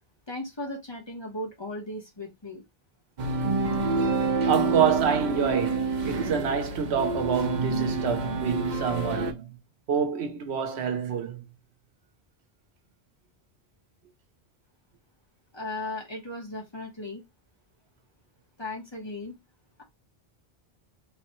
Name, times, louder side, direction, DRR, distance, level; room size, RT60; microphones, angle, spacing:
voice 1, 0.3-2.6 15.5-17.2 18.6-19.3, left 2 dB, 30° left, 0.8 m, -36 dB
sound 1, 3.2-9.3, right 3 dB, 50° right, 0.7 m, -28 dB
voice 2, 4.5-9.6 9.9-11.4, right 7 dB, 90° right, 0.9 m, -27 dB
3.2 x 2.1 x 2.9 m
omnidirectional pair, 1.1 m